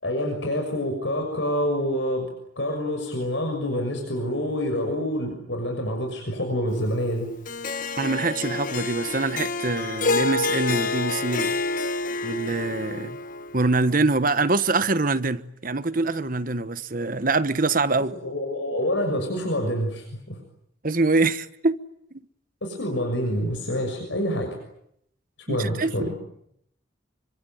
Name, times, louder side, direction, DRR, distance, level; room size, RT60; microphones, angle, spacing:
voice 1, 0.0-2.3 2.6-7.3 18.2-20.4 22.6-24.6 25.5-26.1, equal, 65° left, 6.3 m, -27 dB
Harp, 7.5-13.8, left 3 dB, 45° left, 1.4 m, -28 dB
voice 2, 8.0-11.6 12.2-13.2 13.5-18.2 20.8-21.8 25.5-26.1, right 3 dB, 45° right, 1.2 m, -24 dB
26.0 x 25.0 x 9.2 m
head